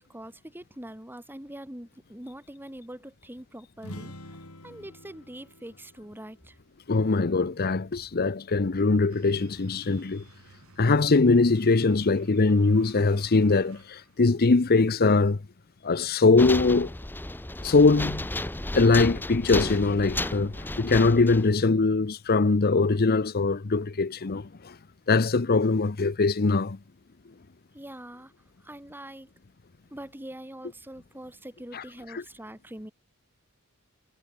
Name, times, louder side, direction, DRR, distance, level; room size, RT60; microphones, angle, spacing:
voice 1, 0.0-4.4 4.6-6.6 27.7-28.3 28.6-29.3 29.9-32.9, right 1 dB, 10° right, 3.0 m, -43 dB
sound 1, 3.7-7.5, left 1 dB, 85° left, 7.7 m, -47 dB
voice 2, 6.9-10.2 10.8-15.4 15.8-16.9 17.6-18.3 18.7-24.8 25.1-26.8 31.7-31.8 32.1-32.2, left 3 dB, 45° left, 0.7 m, -22 dB
sound 2, 9.1-14.2, right 2 dB, 70° right, 5.9 m, -53 dB
sound 3, 16.4-21.6, left 1 dB, 10° left, 0.8 m, -33 dB
head